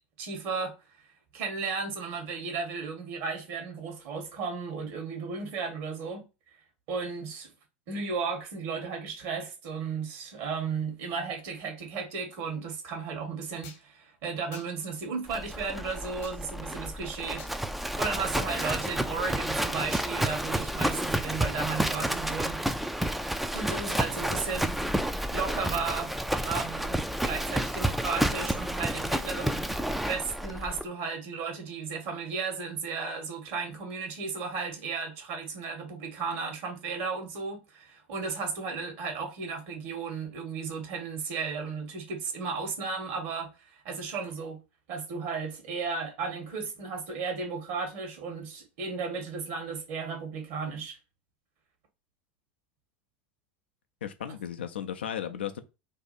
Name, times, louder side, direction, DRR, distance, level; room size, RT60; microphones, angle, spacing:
voice 1, 0.2-0.7 1.3-6.2 6.9-7.5 7.9-17.4 18.0-22.6 23.5-24.8 25.3-44.6 44.9-51.0, right 5 dB, 60° right, 1.3 m, -34 dB
sound 1, 13.6-13.8 14.5-14.7 16.2-16.4 17.4-17.5 18.6-18.8, left 6 dB, 60° left, 1.0 m, -48 dB
Livestock farm animals working animals, 15.3-30.8, right 1 dB, ahead, 0.3 m, -30 dB
voice 2, 54.0-55.6, left 9 dB, 85° left, 0.4 m, -35 dB
2.7 x 2.3 x 4.1 m
hypercardioid pair, 85°, 6 cm